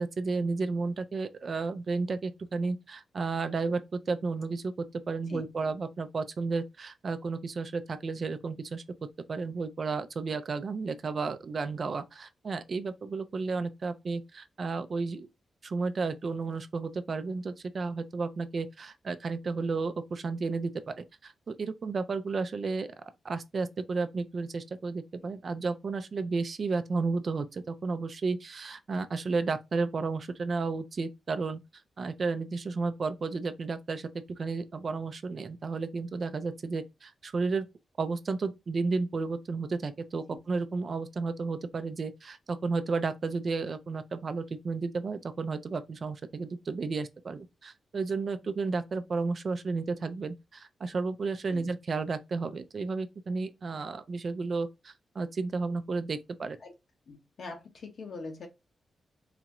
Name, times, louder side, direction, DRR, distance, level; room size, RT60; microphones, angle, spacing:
voice 1, 0.0-8.8 9.3-15.3 15.6-22.9 23.2-31.6 32.0-34.1 34.4-37.7 38.0-56.6, right 4 dB, 55° right, 0.4 m, -32 dB
voice 2, 5.3-5.7 25.2-25.3 40.3-40.4 51.5-51.7 56.6-56.7 57.1-58.5, left 3 dB, 65° left, 1.1 m, -43 dB
4.0 x 2.4 x 2.9 m
cardioid pair, 75°, 0 cm